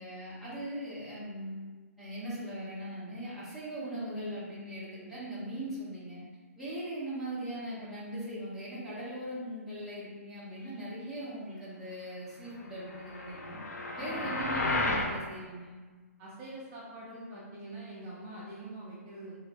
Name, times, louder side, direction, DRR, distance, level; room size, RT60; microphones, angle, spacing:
voice 1, 0.0-1.6 2.0-6.2 6.6-13.6 14.0-15.7, right 1 dB, ahead, -12 dB, 1.1 m, -39 dB
sound 1, 12.9-15.1, left 2 dB, 90° left, 0.5 m, -32 dB
voice 2, 13.9-14.4 16.2-19.4, right 1 dB, 30° right, -8 dB, 0.8 m, -44 dB
3.2 x 2.8 x 2.9 m, 1.4 s
hypercardioid pair, 145°, 8 cm